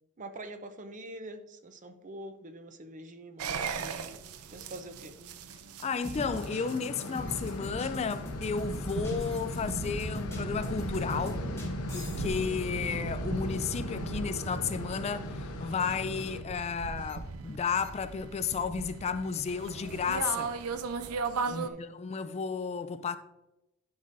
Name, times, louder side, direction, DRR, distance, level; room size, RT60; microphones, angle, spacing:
voice 1, 0.2-4.1 4.5-5.2 21.5-22.0, right 1 dB, 35° right, 0.6 m, -45 dB
sound 1, 3.4-21.7, right 4 dB, 85° right, 0.5 m, -38 dB
voice 2, 5.8-11.4 11.9-20.6 21.5-23.2, left 5 dB, 30° left, 0.3 m, -33 dB
sound 2, 5.9-12.4, equal, 15° left, 1.1 m, -42 dB
sound 3, 6.2-16.4, left 2 dB, 90° left, 0.8 m, -39 dB
10.5 x 5.4 x 2.6 m
head